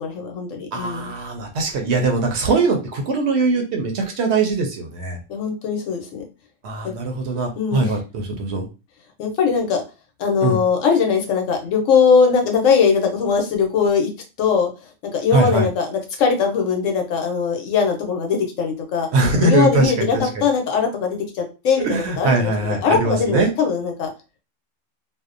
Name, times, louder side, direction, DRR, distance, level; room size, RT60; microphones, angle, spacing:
voice 1, 0.0-1.1 5.3-6.2 6.8-6.9 7.6-7.9 9.2-9.8 10.2-14.1 14.4-14.7 15.1-19.1 19.4-22.5 22.8-24.1, left 6 dB, 80° left, 3 dB, 1.0 m, -20 dB
voice 2, 0.7-5.2 6.6-8.7 10.4-10.6 15.3-15.7 19.1-20.4 21.8-23.5, right 3 dB, 65° right, 3 dB, 0.8 m, -21 dB
2.6 x 2.0 x 2.4 m, 0.30 s
omnidirectional pair, 1.3 m